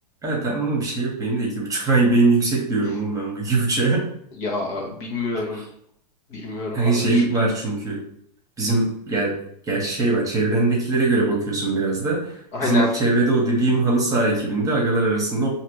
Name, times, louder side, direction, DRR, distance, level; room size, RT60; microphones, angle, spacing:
voice 1, 0.2-4.1 5.5-5.6 6.7-8.0 8.6-9.3 9.7-12.3 12.6-15.5, right 2 dB, 15° right, -2 dB, 1.4 m, -21 dB
voice 2, 4.4-5.6 6.3-7.2 12.5-12.9, left 2 dB, 45° left, -1 dB, 1.4 m, -27 dB
5.7 x 2.9 x 3.2 m, 0.67 s
hypercardioid pair, 110°, 21 cm